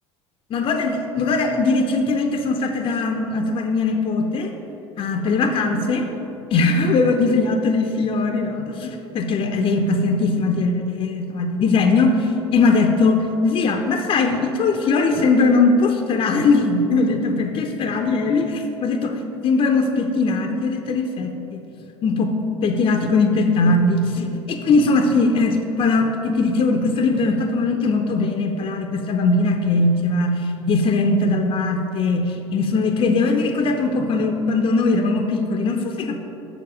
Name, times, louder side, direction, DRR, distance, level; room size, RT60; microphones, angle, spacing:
voice 1, 0.5-4.5 5.0-6.1 6.5-18.5 18.8-21.6 22.0-22.3 22.6-36.2, left 3 dB, 35° left, 4 dB, 0.6 m, -20 dB
7.0 x 5.9 x 4.8 m, 2.9 s
figure-of-eight pair, 70°, 15 cm